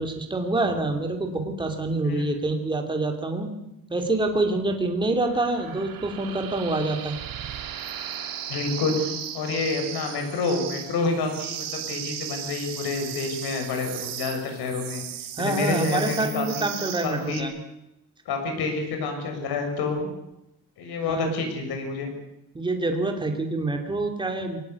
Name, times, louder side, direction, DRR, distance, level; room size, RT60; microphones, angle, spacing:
voice 1, 0.0-3.5 3.9-7.2 15.4-17.5 21.0-21.3 22.5-24.6, right 2 dB, 15° right, 4 dB, 2.8 m, -26 dB
sound 1, 5.2-17.4, right 9 dB, 65° right, 2.5 m, -36 dB
voice 2, 8.5-15.1 15.4-16.7 17.0-17.5 18.2-20.1 20.8-22.1, left 3 dB, 90° left, 4 dB, 6.8 m, -28 dB
23.0 x 19.5 x 8.3 m, 0.86 s
cardioid pair, 165°, 37 cm